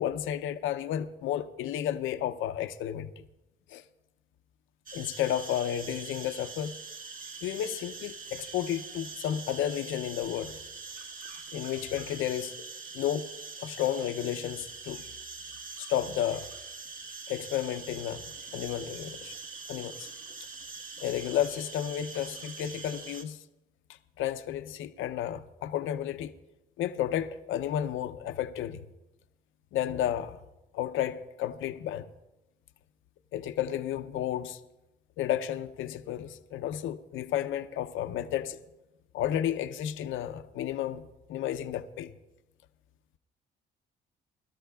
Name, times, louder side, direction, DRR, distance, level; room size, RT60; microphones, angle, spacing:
voice 1, 0.0-3.1 3.7-3.8 4.9-6.7 7.4-10.6 11.5-12.5 12.9-13.3 13.6-15.0 15.8-16.5 17.3-18.2 18.5-19.4 19.7-20.1 21.0-23.4 24.2-26.3 26.8-28.8 29.7-30.4 30.7-32.1 33.3-34.6 35.2-38.6 39.1-42.1, left 11 dB, 85° left, 0.6 m, -32 dB
sound 1, 4.9-23.2, right 4 dB, 45° right, 1.2 m, -43 dB
21.5 x 12.5 x 2.3 m
cardioid pair, 90°, 20 cm